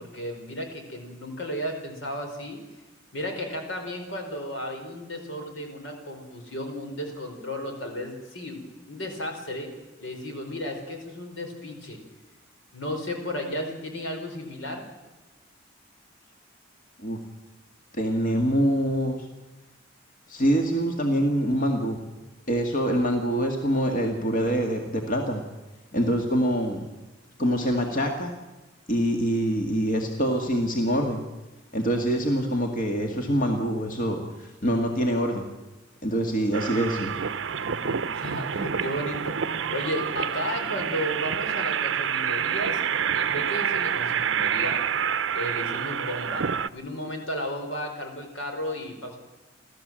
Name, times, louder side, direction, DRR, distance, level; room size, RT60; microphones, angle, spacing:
voice 1, 0.0-2.6 3.1-8.6 8.8-9.7 10.0-12.0 12.7-14.8 37.6-42.8 43.1-44.8 45.3-49.3, equal, 80° left, 4 dB, 4.7 m, -34 dB
voice 2, 17.9-19.3 20.3-22.0 22.5-25.4 25.9-26.8 27.4-28.3 28.9-31.2 31.7-35.5 36.0-37.2, equal, 45° left, 2 dB, 2.1 m, -25 dB
sound 1, 36.5-46.7, right 7 dB, 70° right, 0.6 m, -28 dB
30.0 x 13.0 x 7.7 m, 1.1 s
head